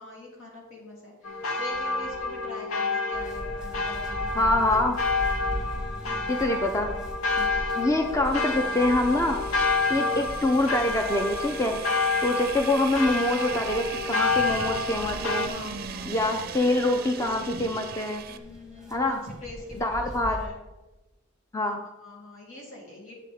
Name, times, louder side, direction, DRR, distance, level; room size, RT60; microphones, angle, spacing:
voice 1, 0.0-4.9 5.4-5.8 9.9-10.3 15.5-16.3 16.8-17.1 17.3-17.5 18.3-20.6 21.6-21.7 22.0-23.1, left 2 dB, 75° left, -3 dB, 3.2 m, -44 dB
sound 1, 1.2-15.5, left 3 dB, 90° left, 1.0 m, -29 dB
sound 2, 3.1-20.5, equal, 5° right, 1.4 m, -40 dB
voice 2, 4.4-5.0 6.3-6.9 7.4-7.5 7.7-9.4 9.9-11.8 12.2-15.5 16.1-18.2 18.9-19.2 19.8-20.4 21.5-21.8, left 2 dB, 15° left, 4 dB, 0.5 m, -25 dB
sound 3, 8.3-18.4, right 7 dB, 45° right, 0.5 m, -39 dB
10.5 x 7.7 x 3.6 m, 1.1 s
head